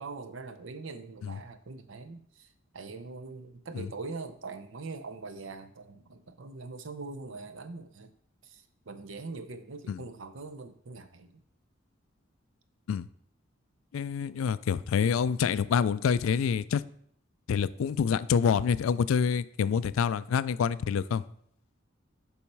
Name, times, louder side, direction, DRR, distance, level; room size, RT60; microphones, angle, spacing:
voice 1, 0.0-8.1 8.4-11.4, right 3 dB, 70° right, 0.7 m, -42 dB
voice 2, 13.9-16.8 17.5-21.2, left 6 dB, 85° left, 0.3 m, -27 dB
7.0 x 5.5 x 4.7 m
head